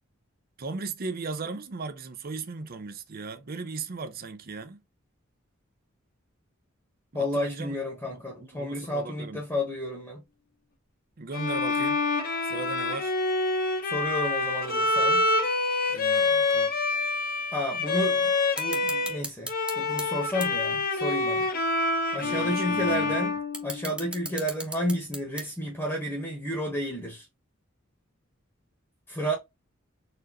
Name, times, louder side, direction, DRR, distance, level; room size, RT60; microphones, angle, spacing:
voice 1, 0.6-4.8 7.1-7.7 8.1-8.2 8.5-9.4 11.2-12.0 12.4-13.1 15.9-16.7 22.2-23.2, right 4 dB, 45° right, 0.6 m, -37 dB
voice 2, 7.1-10.2 13.8-15.3 17.5-21.5 22.1-27.3 29.1-29.3, equal, 15° left, 1.1 m, -31 dB
Bowed string instrument, 11.3-19.2 19.5-24.3, left 3 dB, 45° left, 0.8 m, -27 dB
sound 1, 18.6-20.1 20.4-20.5 21.1-21.2 22.5-22.6 23.3-25.7, right 1 dB, 5° right, 0.7 m, -36 dB
4.3 x 2.6 x 2.9 m
head